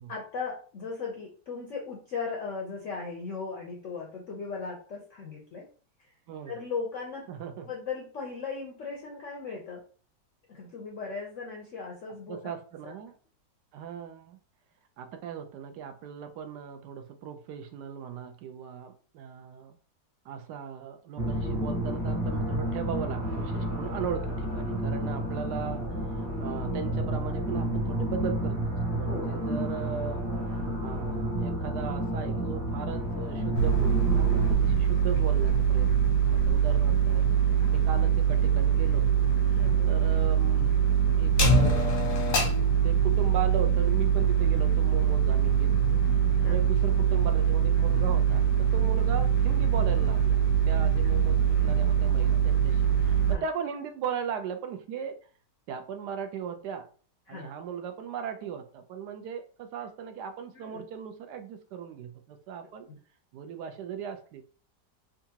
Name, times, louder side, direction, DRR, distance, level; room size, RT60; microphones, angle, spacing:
voice 1, 0.1-5.7 6.0-6.1 6.5-7.2 7.6-9.8 10.5-12.5 12.8-12.9 29.1-29.4 39.5-39.9 46.4-46.6 50.8-50.9 53.3-53.4 57.3-57.5 60.5-60.8 62.9-63.0, left 4 dB, 65° left, -1 dB, 0.8 m, -37 dB
voice 2, 7.3-7.6 12.3-13.2 13.7-14.4 15.0-19.8 20.2-30.2 30.8-35.9 36.2-37.3 37.7-39.1 39.5-40.7 41.2-42.5 42.8-50.4 50.7-55.2 55.7-56.9 57.3-62.9 63.3-64.4, right 7 dB, 75° right, 7 dB, 1.1 m, -38 dB
sound 1, 21.2-34.5, right 1 dB, 40° right, 1.2 m, -31 dB
sound 2, 33.5-53.4, right 7 dB, 90° left, 1.6 m, -23 dB
3.8 x 2.3 x 2.8 m, 0.40 s
omnidirectional pair, 1.9 m